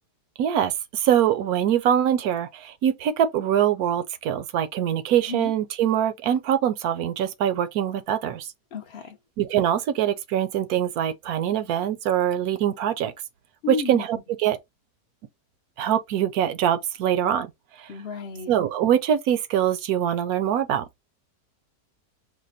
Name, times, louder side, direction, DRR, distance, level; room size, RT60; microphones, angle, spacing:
voice 1, 0.4-8.5 9.4-13.1 13.7-14.6 15.8-17.5 17.8-17.9 18.5-20.9, right 10 dB, 70° right, 1.0 m, -23 dB
voice 2, 8.7-9.2 13.6-14.0 17.9-18.5, left 5 dB, 55° left, 0.7 m, -32 dB
5.0 x 2.1 x 4.0 m
omnidirectional pair, 1.8 m